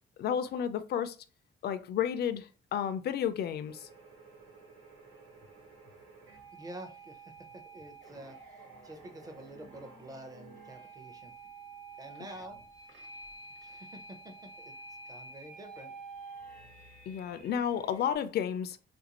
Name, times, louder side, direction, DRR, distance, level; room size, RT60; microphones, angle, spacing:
voice 1, 0.2-1.2 1.6-3.9 17.1-18.8, left 8 dB, 55° left, 0.4 m, -32 dB
sound 1, 3.7-18.1, right 3 dB, 90° right, 1.4 m, -50 dB
voice 2, 6.5-11.3 12.0-12.6 13.6-14.3 14.6-15.9, right 1 dB, 20° right, 0.6 m, -48 dB
3.5 x 2.5 x 2.8 m
cardioid pair, 140°, 20 cm